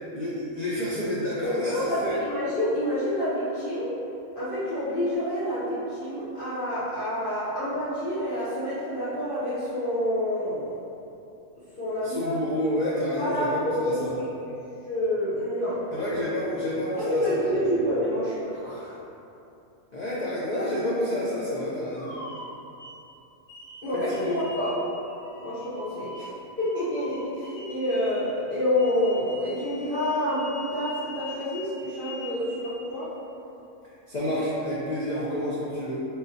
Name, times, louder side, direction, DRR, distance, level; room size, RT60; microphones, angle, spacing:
voice 1, 0.1-2.2 12.0-14.1 15.9-17.4 19.9-22.1 24.1-24.4 34.1-36.0, left 1 dB, 85° left, -8 dB, 0.3 m, -29 dB
voice 2, 1.4-4.0 4.3-10.7 11.8-12.3 13.2-14.0 14.8-15.8 16.9-18.9 23.8-24.7 25.4-26.3 26.6-33.1, left 1 dB, 45° left, -13 dB, 0.8 m, -28 dB
sound 1, 21.8-23.0 23.5-28.3 28.8-32.8, left 2 dB, 65° left, 2.1 m, -43 dB
3.8 x 3.3 x 2.6 m, 2.8 s
omnidirectional pair, 1.5 m